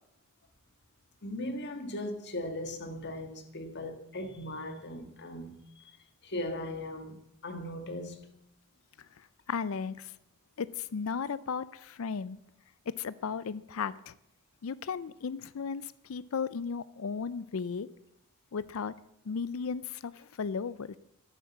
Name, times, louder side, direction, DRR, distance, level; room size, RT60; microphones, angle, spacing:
voice 1, 1.2-5.9 6.2-8.3, left 1 dB, 50° left, 1.5 m, -38 dB
voice 2, 9.5-10.1 10.6-12.4 12.9-14.1 14.6-17.9 18.5-18.9 19.3-21.0, left 5 dB, 70° left, 0.5 m, -35 dB
11.0 x 8.7 x 7.1 m
head